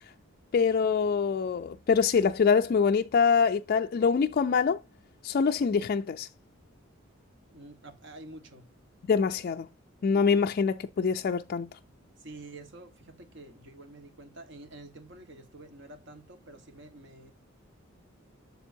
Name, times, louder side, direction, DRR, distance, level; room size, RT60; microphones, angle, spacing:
voice 1, 0.5-4.8 5.2-6.3 9.1-9.7 10.0-11.7, left 5 dB, 45° left, 0.3 m, -24 dB
voice 2, 7.5-8.7 12.2-17.3, right 2 dB, 60° right, 1.4 m, -48 dB
7.2 x 6.8 x 2.6 m
head